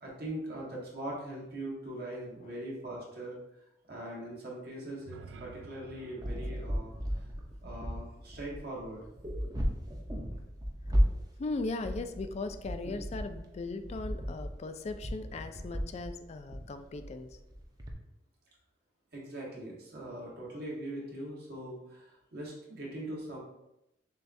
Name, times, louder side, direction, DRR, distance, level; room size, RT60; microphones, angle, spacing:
voice 1, 0.0-3.3 3.9-7.2 7.6-9.0 19.1-23.4, right 1 dB, 60° right, -4 dB, 1.3 m, -41 dB
sound 1, 4.9-9.0, right 4 dB, 80° right, 0.3 m, -53 dB
sound 2, 6.2-17.9, equal, 20° right, 0.6 m, -35 dB
voice 2, 11.4-17.3, left 3 dB, 35° left, 9 dB, 0.3 m, -38 dB
6.5 x 2.3 x 2.6 m, 0.88 s
head